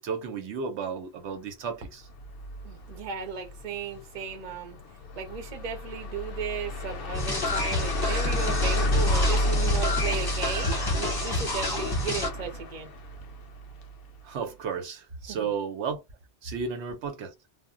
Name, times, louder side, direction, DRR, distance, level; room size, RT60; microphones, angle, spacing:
voice 1, 0.0-2.1 14.2-16.0 16.4-17.3, right 6 dB, 80° right, 0.9 m, -33 dB
sound 1, 2.0-14.2, left 1 dB, 65° left, 0.7 m, -31 dB
voice 2, 2.6-4.8 5.2-12.9 15.3-15.5, right 6 dB, 45° right, 0.7 m, -35 dB
sound 2, 7.1-12.3, left 2 dB, 25° left, 0.6 m, -29 dB
2.1 x 2.1 x 3.6 m
omnidirectional pair, 1.2 m